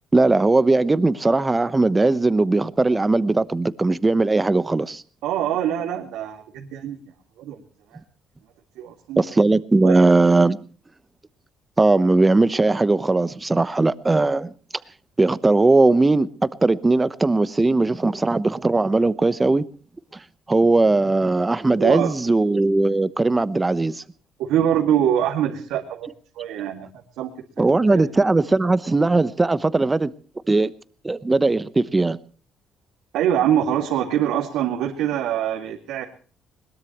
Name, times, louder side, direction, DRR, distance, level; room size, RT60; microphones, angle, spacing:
voice 1, 0.1-5.0 9.2-10.6 11.8-14.5 15.2-16.3 16.6-19.6 20.5-24.0 27.6-30.1 30.5-30.7 31.0-32.2, right 2 dB, 15° right, 1.0 m, -19 dB
voice 2, 5.2-7.0 7.4-7.6 8.8-9.2 9.8-10.1 21.8-22.3 24.4-26.9 27.2-27.3 27.9-28.0 33.1-36.0, right 10 dB, 90° right, 2.3 m, -24 dB
21.5 x 21.0 x 3.1 m
cardioid pair, 120°, 0 cm